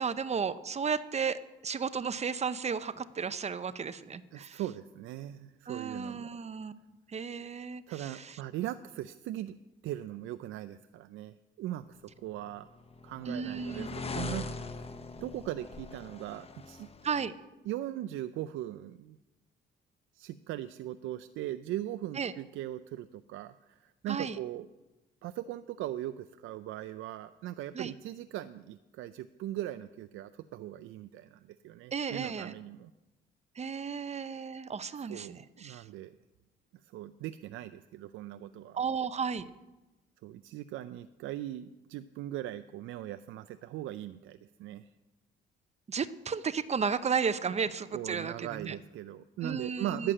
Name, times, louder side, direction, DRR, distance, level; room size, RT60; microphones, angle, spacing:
voice 1, 0.0-4.6 5.7-6.7 7.1-8.4 13.3-13.9 17.0-17.3 22.2-22.3 24.1-24.4 27.7-27.9 31.9-32.5 33.6-35.8 38.8-39.5 45.9-48.8 49.4-50.1, right 6 dB, 35° right, 14 dB, 0.7 m, -34 dB
voice 2, 4.3-6.3 7.9-9.6 9.8-12.7 13.0-14.9 15.2-16.9 17.7-19.2 20.1-24.7 25.2-32.9 35.1-36.1 36.8-38.8 40.2-44.9 47.9-50.1, right 13 dB, 85° right, 12 dB, 0.4 m, -39 dB
sound 1, 12.3-17.3, left 3 dB, 30° left, 1.0 m, -41 dB
11.5 x 7.5 x 8.7 m, 1.1 s
cardioid pair, 90°, 20 cm